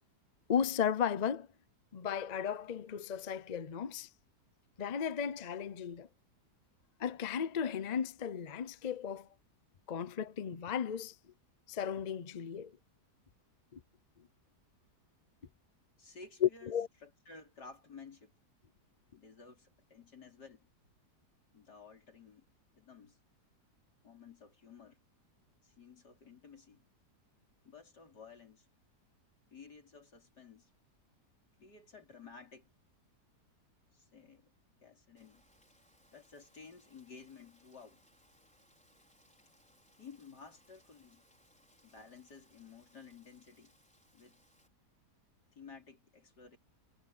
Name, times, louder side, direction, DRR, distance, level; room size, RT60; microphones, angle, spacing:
voice 1, 0.5-1.5 1.9-4.1 4.8-6.1 7.0-9.3 9.9-11.1 11.7-12.8 13.7-13.8 16.4-16.9, left 8 dB, 45° left, 0.5 m, -35 dB
voice 2, 16.0-16.7 17.0-18.3 19.1-20.7 21.5-22.4 22.7-23.2 24.0-25.0 25.6-26.8 27.6-28.7 29.5-30.7 31.6-32.7 33.9-34.5 34.8-35.5 36.1-38.0 40.0-41.3 41.8-43.8 44.1-44.4 45.5-46.6, left 5 dB, 75° left, 4.8 m, -54 dB
Rain, 35.2-44.7, equal, 5° left, 4.9 m, -68 dB
omnidirectional pair, 1.8 m